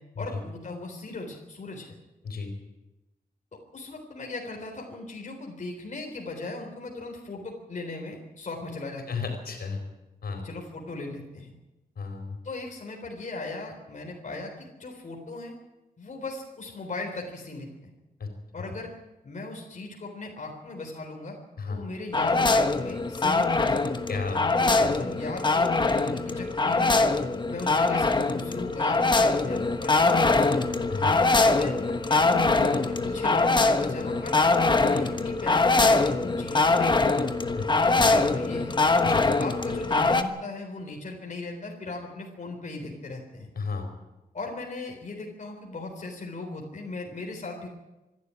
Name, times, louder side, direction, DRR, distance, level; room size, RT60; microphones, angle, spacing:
voice 1, 0.2-1.9 3.7-9.2 10.4-11.5 12.4-15.5 16.0-17.9 18.5-19.0 19.2-21.4 21.7-24.0 24.6-26.9 27.5-30.6 31.5-31.7 32.0-34.4 34.7-37.1 37.9-38.8 39.4-43.5 44.3-47.7, left 3 dB, 55° left, 1 dB, 3.8 m, -38 dB
voice 2, 9.1-9.8 10.2-10.4 12.0-12.4 18.2-18.3 21.6-21.8 24.1-24.9 30.9-31.3 37.6-37.7 37.9-38.1 39.0-39.3 43.6-43.9, left 4 dB, 80° left, 5 dB, 4.5 m, -33 dB
sound 1, 22.1-40.2, left 3 dB, 30° left, 1.2 m, -23 dB
25.5 x 12.0 x 9.8 m, 1.0 s
wide cardioid pair, 160°, 15 cm